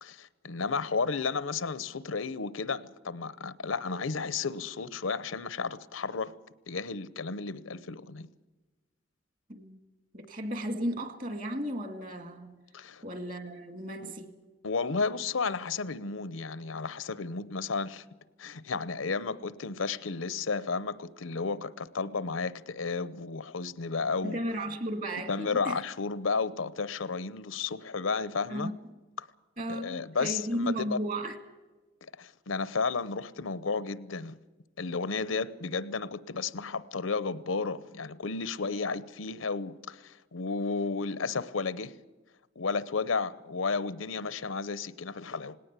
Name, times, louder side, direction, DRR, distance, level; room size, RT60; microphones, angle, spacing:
voice 1, 0.0-6.3 6.7-8.3 12.7-13.0 14.0-14.1 14.6-18.0 18.4-24.4 25.3-28.7 29.2-29.3 29.7-31.0 32.0-34.4 34.8-42.0 42.6-45.6, left 4 dB, 85° left, 0.8 m, -33 dB
voice 2, 10.1-12.6 13.0-14.4 24.2-25.8 28.5-28.7 29.6-31.4, equal, 40° right, 2.0 m, -34 dB
19.0 x 18.0 x 8.2 m
head